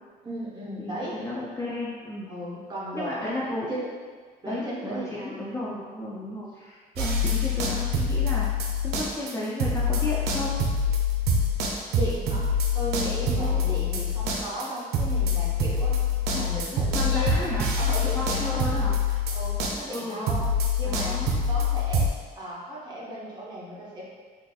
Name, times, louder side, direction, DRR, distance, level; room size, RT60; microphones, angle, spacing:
voice 1, 0.2-1.1 2.3-3.9 4.4-5.3 11.9-17.5 17.8-18.6 19.1-21.2 21.5-22.1 22.4-24.0, equal, 25° right, -6 dB, 1.0 m, -35 dB
voice 2, 0.8-2.3 2.9-3.7 4.5-8.5 8.8-10.6 13.4-13.7 16.9-17.7 18.1-19.0 19.9-20.4 20.8-21.4, left 1 dB, 15° left, -6 dB, 0.4 m, -33 dB
sound 1, 6.9-9.3 9.6-22.1, left 3 dB, 75° right, 0.5 m, -25 dB
3.9 x 2.5 x 2.3 m, 1.5 s
cardioid pair, 110°, 17 cm